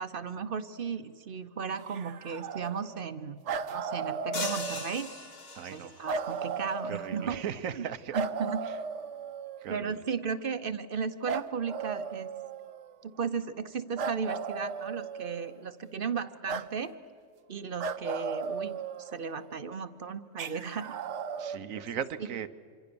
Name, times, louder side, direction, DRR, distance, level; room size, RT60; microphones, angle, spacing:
voice 1, 0.0-3.4 3.7-5.1 5.6-7.4 7.7-7.9 8.1-8.6 9.7-12.3 13.0-16.9 17.5-20.9 21.7-21.8, right 6 dB, 50° right, 11 dB, 0.9 m, -35 dB
sound 1, 1.8-3.1 3.5-5.1 6.1-7.5 8.1-9.8 11.3-12.9 14.0-15.6 16.5-16.7 17.8-19.4 20.4-21.6, right 5 dB, 65° right, 1.1 m, -36 dB
sound 2, 4.3-6.1, left 3 dB, 50° left, 1.7 m, -38 dB
voice 2, 5.5-6.0 6.9-8.2 8.6-8.8 9.6-10.0 21.4-22.5, right 8 dB, 90° right, 12 dB, 1.3 m, -37 dB
26.5 x 25.0 x 6.9 m, 2.1 s
omnidirectional pair, 1.4 m